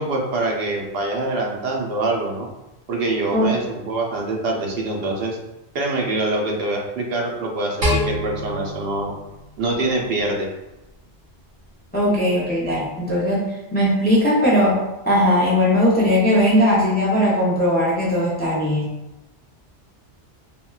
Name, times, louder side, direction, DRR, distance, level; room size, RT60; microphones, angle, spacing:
voice 1, 0.0-2.5 2.9-5.4 5.7-9.1 9.6-10.5, right 2 dB, 70° right, 0 dB, 0.8 m, -24 dB
sound 1, 7.8-10.2, left 1 dB, 85° right, 1.4 m, -26 dB
voice 2, 11.9-13.4 13.7-14.7 15.1-18.9, left 1 dB, 10° left, -7 dB, 0.5 m, -18 dB
3.6 x 2.2 x 2.3 m, 0.96 s
omnidirectional pair, 1.1 m